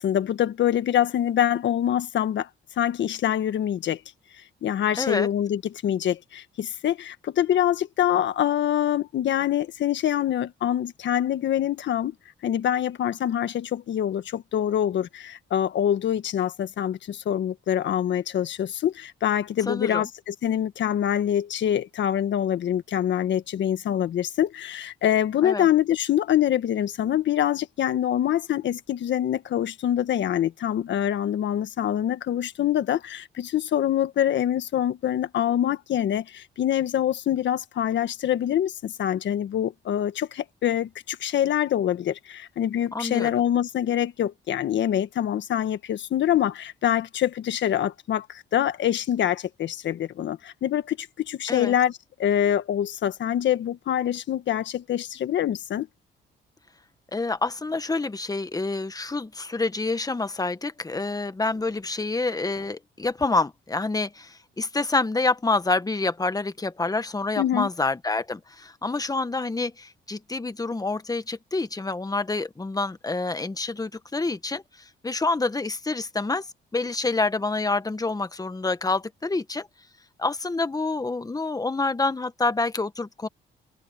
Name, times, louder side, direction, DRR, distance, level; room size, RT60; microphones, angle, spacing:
voice 1, 0.0-2.5 2.8-4.0 4.6-12.1 12.4-55.9 67.4-67.7, left 10 dB, 65° left, 1.5 m, -25 dB
voice 2, 5.0-5.3 19.7-20.1 25.4-25.7 42.9-43.3 51.5-51.7 57.1-74.6 75.0-76.4 76.7-79.7 80.2-83.3, left 3 dB, 20° left, 1.4 m, -27 dB
cardioid pair, 90°, 20 cm